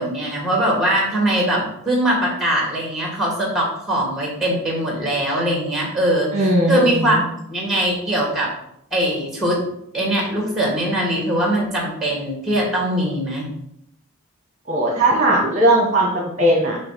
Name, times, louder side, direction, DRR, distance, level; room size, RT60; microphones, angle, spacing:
voice 1, 0.0-7.2 7.5-8.5 8.9-9.6 9.9-13.5, right 1 dB, ahead, -2 dB, 1.7 m, -21 dB
voice 2, 6.3-7.2 14.7-16.8, right 1 dB, 35° right, -2 dB, 1.1 m, -18 dB
5.6 x 3.3 x 5.7 m, 0.75 s
head